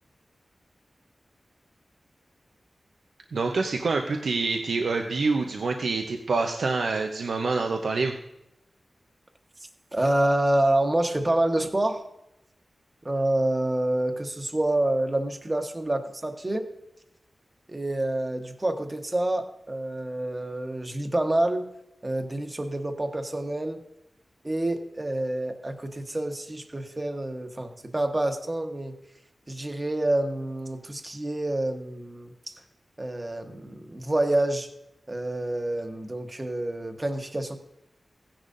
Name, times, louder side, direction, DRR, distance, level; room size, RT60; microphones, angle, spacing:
voice 1, 3.3-8.1, right 3 dB, 85° right, 3 dB, 0.7 m, -26 dB
voice 2, 9.9-12.0 13.0-16.7 17.7-21.7 22.0-23.8 24.4-28.9 29.5-32.6 33.0-34.7 35.1-37.6, right 1 dB, 25° right, 5 dB, 1.2 m, -27 dB
16.0 x 10.0 x 2.6 m, 0.86 s
wide cardioid pair, 80°, 0 cm